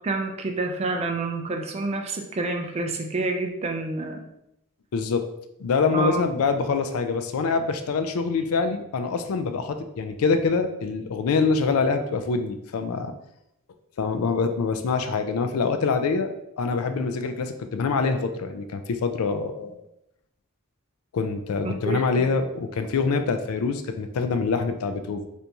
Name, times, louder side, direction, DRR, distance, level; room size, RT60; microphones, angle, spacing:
voice 1, 0.0-4.3 5.9-6.2 21.6-22.0, right 3 dB, 30° right, 4 dB, 0.4 m, -28 dB
voice 2, 4.9-5.2 5.6-13.1 14.0-19.8 21.1-25.3, left 4 dB, 70° left, 8 dB, 0.4 m, -25 dB
3.4 x 2.6 x 2.9 m, 0.82 s
head